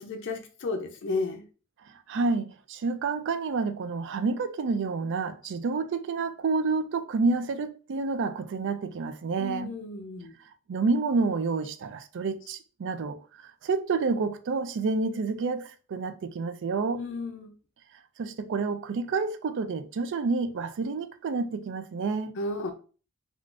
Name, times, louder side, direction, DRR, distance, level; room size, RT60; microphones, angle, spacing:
voice 1, 0.0-1.4 9.4-10.3 17.0-17.5 22.4-22.7, left 3 dB, 55° left, 0.5 m, -33 dB
voice 2, 2.1-9.7 10.7-13.2 13.6-17.0 18.2-22.3, right 4 dB, 55° right, 0.4 m, -29 dB
3.7 x 2.4 x 2.4 m
head